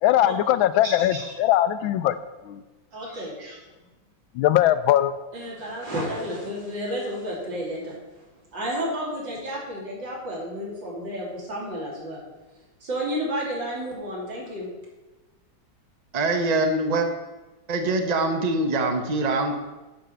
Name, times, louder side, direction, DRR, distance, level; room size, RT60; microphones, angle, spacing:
voice 1, 0.0-2.2 2.4-2.6 4.3-5.1, left 12 dB, 85° left, 13 dB, 1.4 m, -20 dB
voice 2, 0.8-1.3 2.9-3.6 5.3-8.3 8.5-12.2 12.5-14.7, equal, 65° right, -3 dB, 3.5 m, -32 dB
voice 3, 16.1-17.1 17.7-19.6, right 2 dB, 45° right, 5 dB, 0.5 m, -23 dB
9.0 x 5.4 x 7.7 m, 1.1 s
omnidirectional pair, 2.1 m